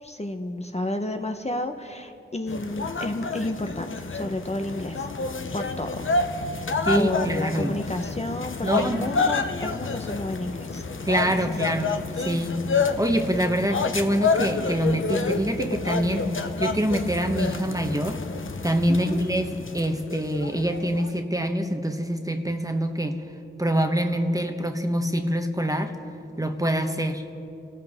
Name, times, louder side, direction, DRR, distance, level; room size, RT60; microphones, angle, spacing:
voice 1, 0.0-5.1 5.5-6.0 6.4-6.7 7.0-10.8 11.3-11.7 18.9-19.2, left 1 dB, 30° left, 5 dB, 0.9 m, -31 dB
sound 1, 2.5-21.2, left 4 dB, 70° left, 0.8 m, -29 dB
voice 2, 6.9-7.8 8.6-9.1 11.0-12.6 13.0-16.3 16.6-18.2 18.6-19.5 19.7-23.2 23.6-25.9 26.4-27.2, right 1 dB, 15° right, 5 dB, 1.1 m, -25 dB
28.5 x 13.5 x 3.6 m, 2.6 s
wide cardioid pair, 70°, 21 cm